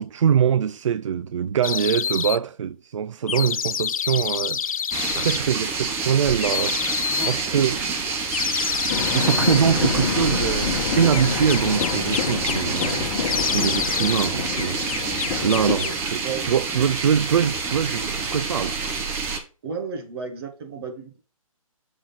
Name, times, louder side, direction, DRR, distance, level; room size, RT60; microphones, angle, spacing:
voice 1, 0.0-7.9 9.1-18.8, right 8 dB, 60° right, 0.4 m, -24 dB
sound 1, 1.6-2.4 3.3-5.4 6.4-7.4 8.3-9.6 11.1-13.0 13.2-14.3 14.6-16.0, left 8 dB, 70° left, 0.4 m, -27 dB
sound 2, 4.9-19.4, right 4 dB, 15° right, 0.9 m, -28 dB
Train, 8.9-15.8, left 6 dB, 30° left, 1.5 m, -28 dB
voice 2, 15.4-16.5 19.6-21.2, right 5 dB, 45° right, 1.8 m, -33 dB
6.3 x 3.8 x 5.8 m
figure-of-eight pair, 145°, 18 cm